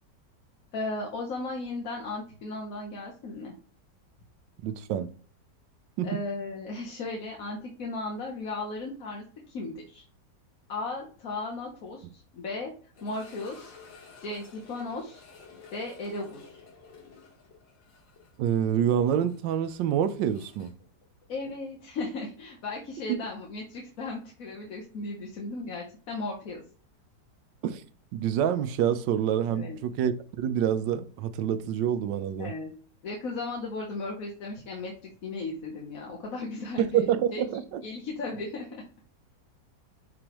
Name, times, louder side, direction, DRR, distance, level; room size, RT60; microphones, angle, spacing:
voice 1, 0.7-3.5 6.0-9.2 9.5-10.0 10.7-13.8 14.2-15.3 15.7-16.6 21.3-26.6 29.5-29.8 32.4-32.7 33.0-37.4 37.8-38.8, left 2 dB, 55° left, 1.3 m, -36 dB
voice 2, 4.6-5.1 6.0-6.1 18.4-20.7 23.1-23.2 27.6-27.8 28.1-32.5 36.8-37.8, right 9 dB, 85° right, 1.3 m, -27 dB
sound 1, 12.9-21.9 22.1-22.2 22.8-22.9 25.5-25.6, left 5 dB, 85° left, 2.3 m, -53 dB
9.6 x 3.3 x 3.0 m
omnidirectional pair, 1.9 m